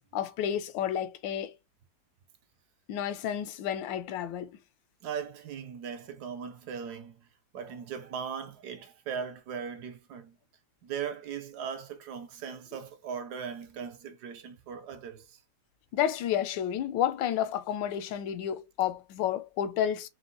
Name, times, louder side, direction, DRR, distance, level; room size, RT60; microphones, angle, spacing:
voice 1, 0.1-1.5 2.9-4.5 15.9-20.1, left 10 dB, 85° left, 1.3 m, -30 dB
voice 2, 5.0-7.3 7.5-10.4 10.8-15.4, right 7 dB, 70° right, 1.1 m, -39 dB
4.9 x 2.1 x 3.7 m
omnidirectional pair, 2.0 m